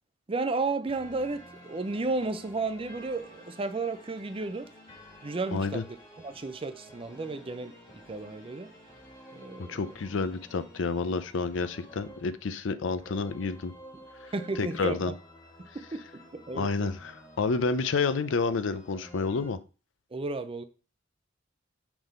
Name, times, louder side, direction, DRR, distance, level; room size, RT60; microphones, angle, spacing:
voice 1, 0.3-4.7 5.2-5.9 6.2-8.7 9.3-9.8 14.3-15.1 15.7-16.9 20.1-20.6, right 3 dB, 30° right, 0.5 m, -33 dB
sound 1, 0.9-19.5, equal, 20° left, 1.9 m, -52 dB
voice 2, 5.5-5.8 9.6-13.7 14.2-15.1 16.5-19.6, left 4 dB, 75° left, 0.5 m, -30 dB
6.0 x 3.5 x 5.4 m
head